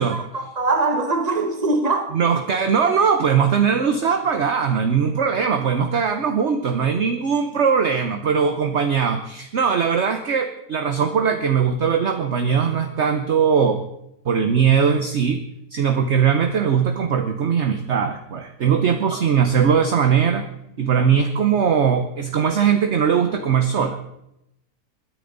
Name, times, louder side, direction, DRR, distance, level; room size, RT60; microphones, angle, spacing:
voice 1, 0.0-2.1 19.1-19.2, right 3 dB, 25° right, 1.5 m, -22 dB
voice 2, 2.1-13.8 14.2-15.4 15.7-20.5 20.8-24.0, right 7 dB, 50° right, 1.1 m, -20 dB
21.0 x 10.5 x 4.0 m
omnidirectional pair, 1.7 m